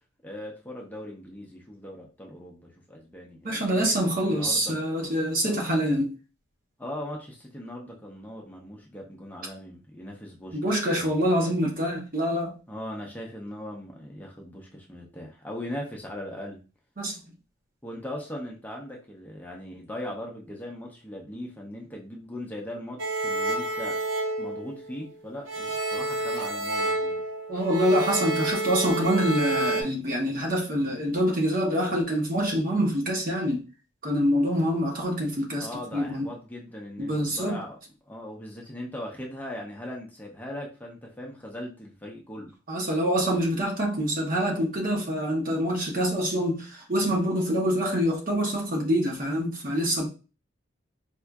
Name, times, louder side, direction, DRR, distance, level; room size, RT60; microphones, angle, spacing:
voice 1, 0.2-4.7 5.4-5.6 6.8-10.6 10.9-11.1 12.7-16.6 17.8-24.0 24.4-27.2 35.6-37.8 38.0-42.5, left 1 dB, 10° left, 0.5 m, -39 dB
voice 2, 3.4-6.1 10.5-12.6 17.0-17.2 27.5-33.6 34.0-36.3 37.0-37.6 42.7-50.1, equal, 45° right, 0.9 m, -25 dB
sound 1, 23.0-25.1 25.5-29.8, right 2 dB, 85° right, 0.7 m, -29 dB
4.3 x 2.4 x 2.3 m
head